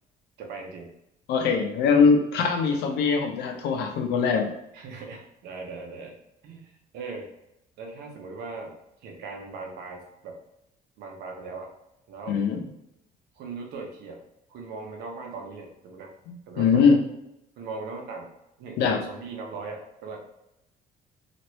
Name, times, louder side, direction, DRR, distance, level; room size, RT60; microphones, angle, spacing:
voice 1, 0.4-0.9 4.7-6.1 6.4-7.3 7.8-8.7 9.0-10.4 11.0-11.7 12.1-12.4 13.3-14.2 14.5-16.1 16.5-16.9 17.6-18.3 18.6-20.2, right 4 dB, 80° right, 1 dB, 0.8 m, -39 dB
voice 2, 1.3-4.5 12.3-12.6 16.3-17.0 18.8-19.0, left 5 dB, 80° left, 4 dB, 0.6 m, -22 dB
3.0 x 2.5 x 3.0 m, 0.84 s
cardioid pair, 110°, 17 cm